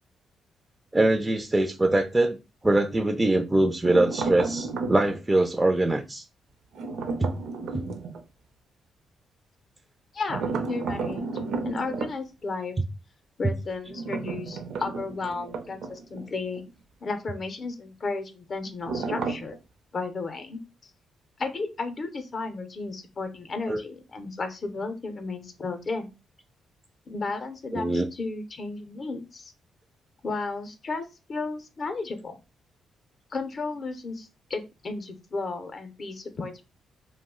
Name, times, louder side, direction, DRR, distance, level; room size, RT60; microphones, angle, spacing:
voice 1, 0.9-2.4 2.6-6.2 7.2-7.3 7.7-7.9 23.7-23.8 27.7-28.1, right 2 dB, 15° right, 0.3 m, -23 dB
sound 1, 3.8-5.2 6.7-8.2 10.3-12.1 13.9-16.3 16.6-16.7 18.9-19.6, right 4 dB, 75° right, 0.5 m, -32 dB
voice 2, 10.1-11.2 11.6-12.8 13.4-16.6 17.0-19.6 19.9-20.6 21.4-26.1 27.1-29.5 30.2-32.4 33.3-36.7, left 3 dB, 45° left, 0.5 m, -33 dB
2.3 x 2.0 x 3.6 m
cardioid pair, 85°, 0 cm